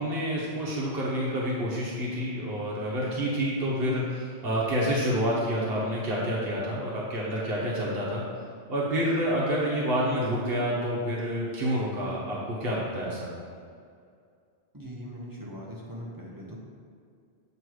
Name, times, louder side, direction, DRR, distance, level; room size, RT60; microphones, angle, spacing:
voice 1, 0.0-8.2 8.7-13.3, equal, 65° right, -5 dB, 1.2 m, -28 dB
voice 2, 14.7-16.6, equal, 20° right, -4 dB, 0.9 m, -40 dB
7.7 x 3.1 x 4.7 m, 2.3 s
omnidirectional pair, 1.1 m